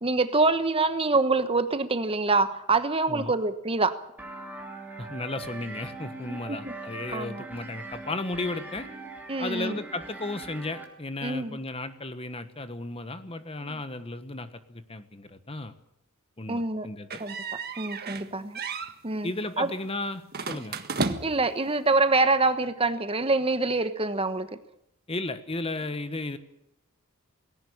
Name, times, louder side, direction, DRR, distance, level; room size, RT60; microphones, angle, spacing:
voice 1, 0.0-4.0 6.3-6.7 7.1-7.4 9.3-9.8 11.2-11.6 13.6-13.7 16.5-16.9 17.2-17.3 17.8-18.6 19.0-19.3 19.6-19.7 20.5-20.6 21.2-24.5, right 3 dB, 25° right, 11 dB, 1.2 m, -25 dB
sound 1, 4.2-10.8, right 3 dB, 10° right, 3.7 m, -41 dB
voice 2, 5.0-8.9 9.4-15.7 16.4-17.2 19.2-20.8 25.1-26.4, left 2 dB, 25° left, 11 dB, 1.4 m, -34 dB
sound 2, 17.1-18.3 18.5-18.9 20.3-21.5, right 4 dB, 45° right, 1.6 m, -32 dB
19.0 x 17.5 x 8.7 m, 0.80 s
head